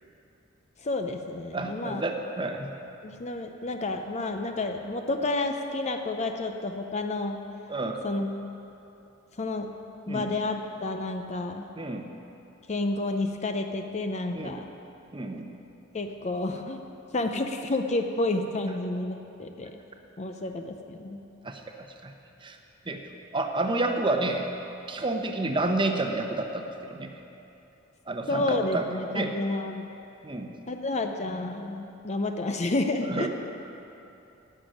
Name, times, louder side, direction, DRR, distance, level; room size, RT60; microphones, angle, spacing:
voice 1, 0.8-2.0 3.0-7.4 8.0-8.3 9.4-9.7 10.1-11.7 12.7-14.7 15.9-16.8 17.1-19.8 20.2-21.2 28.3-29.9 30.7-33.3, left 2 dB, 35° left, 5 dB, 0.6 m, -30 dB
voice 2, 1.5-2.7 7.7-8.0 10.1-10.3 11.8-12.1 14.3-14.5 15.1-15.5 21.4-22.1 22.4-22.6 22.9-23.0 23.3-24.5 24.9-27.1 28.1-28.8 29.1-29.3 30.2-30.5 33.1-33.3, right 2 dB, 25° right, 4 dB, 0.9 m, -30 dB
11.0 x 7.1 x 9.1 m, 2.9 s
head